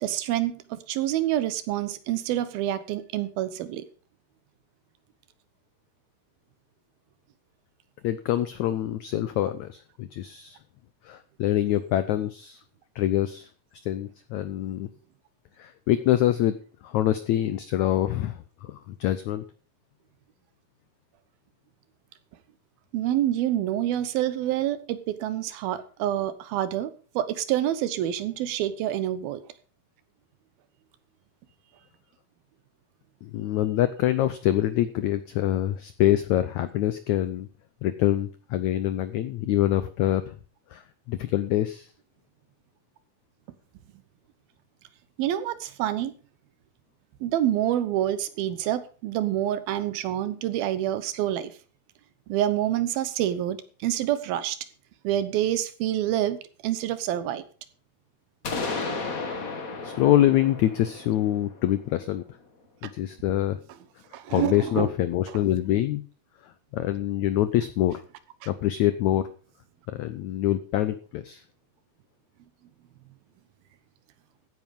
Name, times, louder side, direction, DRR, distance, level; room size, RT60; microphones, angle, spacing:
voice 1, 0.0-3.8 22.9-29.4 45.2-46.1 47.2-51.5 52.3-54.6 55.0-57.4 62.8-62.9 64.1-64.9, right 12 dB, 75° right, 14 dB, 2.8 m, -27 dB
voice 2, 8.0-10.6 11.0-12.6 12.9-13.5 13.8-14.9 15.6-16.6 16.8-19.4 33.2-37.5 37.8-40.3 40.7-40.8 41.1-41.9 59.8-62.2 62.8-63.6 64.3-66.0 66.4-68.0 68.5-69.2 69.9-71.4, left 13 dB, 90° left, 12 dB, 1.6 m, -25 dB
sound 1, 58.4-62.2, left 3 dB, 40° left, 1.3 m, -34 dB
15.5 x 9.6 x 5.3 m, 0.38 s
omnidirectional pair, 4.4 m